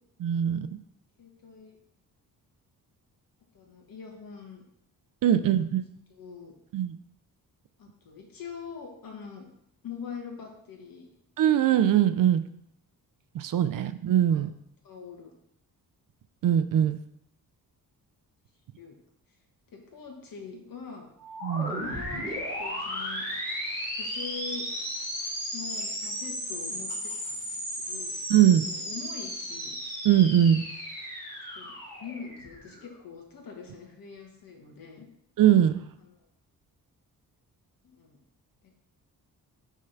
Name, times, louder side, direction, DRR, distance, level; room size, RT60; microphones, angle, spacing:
voice 1, 0.2-0.7 5.2-5.8 6.7-7.0 11.4-12.4 13.3-14.5 16.4-17.0 21.4-21.8 28.3-28.7 30.0-30.6 35.4-35.8, right 10 dB, 60° right, 12 dB, 0.5 m, -21 dB
voice 2, 1.2-1.8 3.5-4.6 5.3-5.4 6.1-6.5 7.8-9.5 9.8-11.1 13.6-13.8 14.3-14.5 14.8-15.3 18.8-19.0 19.7-21.1 21.6-23.2 23.9-24.6 25.5-27.6 27.9-28.1 28.6-29.8 30.4-30.8 31.6-35.1 36.0-36.2 37.8-38.2 38.6-38.7, left 6 dB, 65° left, 1 dB, 1.6 m, -43 dB
sound 1, 21.2-32.9, equal, 5° left, 2.9 m, -35 dB
6.4 x 3.7 x 5.7 m, 0.74 s
wide cardioid pair, 150°, 37 cm